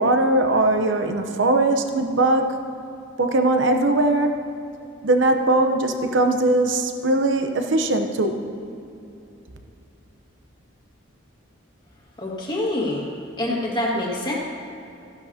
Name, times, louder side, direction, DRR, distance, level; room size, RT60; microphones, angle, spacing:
voice 1, 0.0-2.5 3.2-4.4 5.0-8.4, right 2 dB, 60° right, 5 dB, 0.8 m, -20 dB
voice 2, 12.2-13.0 13.4-14.3, left 1 dB, 20° left, -3 dB, 1.7 m, -25 dB
14.5 x 11.0 x 2.8 m, 2.7 s
head